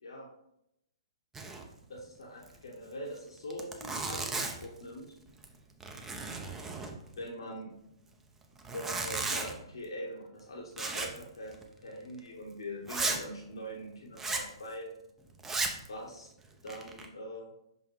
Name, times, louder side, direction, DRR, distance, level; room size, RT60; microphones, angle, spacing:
Zipper (clothing), 1.3-1.7 2.0-2.1 2.4-2.6 3.2-3.3 3.5-4.8 5.3-5.6 5.8-7.2 8.6-9.6 10.8-11.2 11.5-11.7 12.2-12.3 12.9-13.2 14.2-14.5 15.4-15.9 16.4-17.1, right 3 dB, 10° right, 0.7 m, -35 dB
voice 1, 1.9-5.1 7.2-7.7 8.7-14.9 15.9-16.3 16.6-17.5, equal, 75° left, -1 dB, 1.1 m, -43 dB
5.7 x 5.5 x 3.2 m, 0.80 s
figure-of-eight pair, 115°, 3 cm